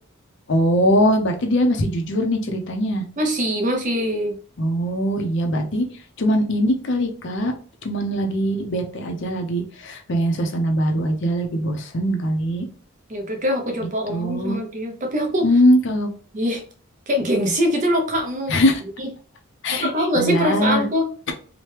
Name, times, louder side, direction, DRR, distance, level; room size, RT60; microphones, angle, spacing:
voice 1, 0.5-3.0 4.6-5.9 6.2-7.5 7.8-12.7 14.1-14.6 15.4-16.1 18.5-18.8 19.6-20.9, equal, 55° left, 4 dB, 0.6 m, -21 dB
voice 2, 3.2-4.4 13.1-15.5 16.3-16.6 17.1-18.6 19.0-19.1 19.7-21.1, equal, 35° right, 3 dB, 0.6 m, -23 dB
2.9 x 2.2 x 3.2 m, 0.42 s
head